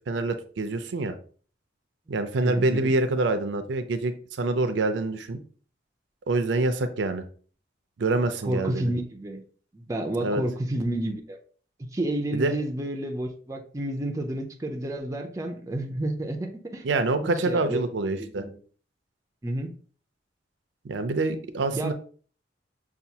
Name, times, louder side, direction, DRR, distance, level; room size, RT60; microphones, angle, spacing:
voice 1, 0.1-1.2 2.1-5.4 6.3-7.2 8.0-8.9 10.2-10.4 12.3-12.6 16.8-18.4 20.8-21.9, right 2 dB, 75° right, 9 dB, 0.4 m, -26 dB
voice 2, 2.4-2.9 8.4-9.4 9.7-11.4 11.8-16.8 17.2-18.6 19.4-19.7 21.7-21.9, right 1 dB, 15° right, 3 dB, 0.4 m, -30 dB
5.6 x 2.3 x 2.7 m, 0.43 s
head